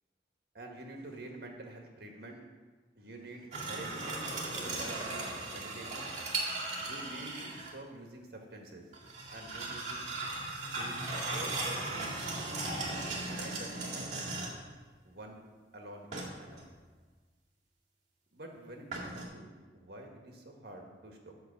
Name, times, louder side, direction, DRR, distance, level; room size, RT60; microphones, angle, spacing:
voice 1, 0.5-2.4 2.9-4.1 4.5-6.1 6.8-8.9 9.3-10.1 10.6-12.6 13.3-13.8 15.0-15.4 15.7-16.6 18.3-21.3, right 1 dB, 60° right, 2 dB, 1.6 m, -48 dB
sound 1, 3.5-7.7 8.9-14.7 16.1-16.7 18.9-19.2, right 2 dB, 40° right, 2.0 m, -37 dB
8.1 x 6.5 x 6.6 m, 1.3 s
head